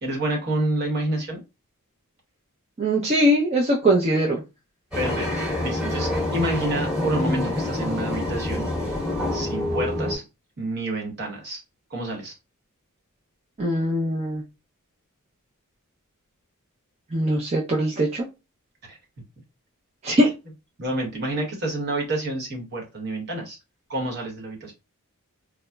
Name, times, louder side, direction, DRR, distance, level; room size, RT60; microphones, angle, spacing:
voice 1, 0.0-1.4 5.0-5.3 5.6-9.0 9.3-10.2 10.6-11.6 11.9-12.3 18.9-19.0 20.8-23.6 23.9-24.7, right 1 dB, 50° right, 1 dB, 1.0 m, -28 dB
voice 2, 2.8-4.4 13.6-14.4 17.1-18.3 20.0-20.3, right 1 dB, 30° right, -2 dB, 0.5 m, -21 dB
sound 1, 4.9-10.1, left 1 dB, 5° right, 1.0 m, -26 dB
3.7 x 2.0 x 2.2 m, 0.26 s
head